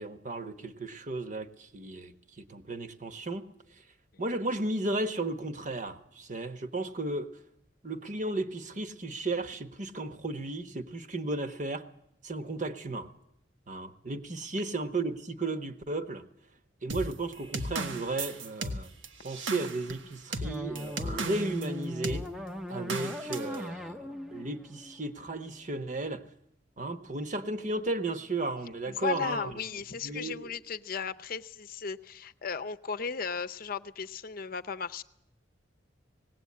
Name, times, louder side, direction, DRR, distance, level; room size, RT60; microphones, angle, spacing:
voice 1, 0.0-3.4 4.2-7.3 7.8-11.9 12.2-13.1 13.7-16.2 16.8-18.9 19.2-22.3 22.7-26.2 26.8-29.5 30.0-30.5, right 2 dB, 45° right, 1.1 m, -34 dB
sound 1, 16.9-21.7 22.0-22.3 22.9-23.6, right 2 dB, 90° right, 1.4 m, -35 dB
sound 2, 20.4-25.6, equal, ahead, 0.7 m, -40 dB
voice 2, 28.9-35.0, left 6 dB, 50° left, 0.7 m, -35 dB
19.5 x 17.0 x 8.5 m
head